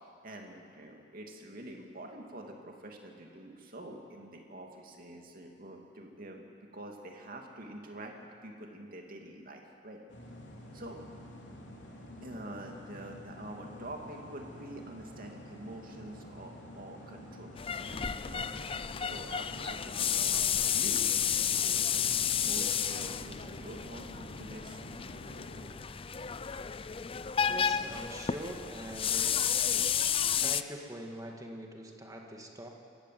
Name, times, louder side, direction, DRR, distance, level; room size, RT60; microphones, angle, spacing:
voice 1, 0.0-6.5 6.7-10.0 10.7-11.0 12.2-21.1 21.4-21.9 22.4-24.8, right 1 dB, 50° right, 2 dB, 2.6 m, -46 dB
sound 1, 10.1-25.7, left 1 dB, 75° left, 3.5 m, -49 dB
sound 2, 17.6-30.6, left 8 dB, 30° left, 0.5 m, -31 dB
voice 2, 27.5-29.3 30.4-32.7, right 1 dB, 20° right, 1 dB, 2.1 m, -43 dB
27.0 x 15.0 x 7.7 m, 2.4 s
head